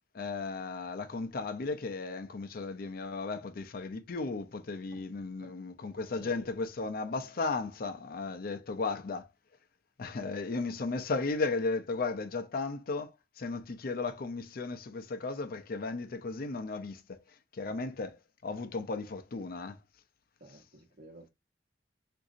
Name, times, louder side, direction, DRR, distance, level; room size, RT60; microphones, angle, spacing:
voice 1, 0.1-9.3 10.0-17.2 17.5-19.8, left 3 dB, 55° left, 0.5 m, -35 dB
voice 2, 6.1-6.5 20.4-21.3, right 1 dB, 60° right, 1.2 m, -53 dB
3.8 x 2.6 x 2.5 m
head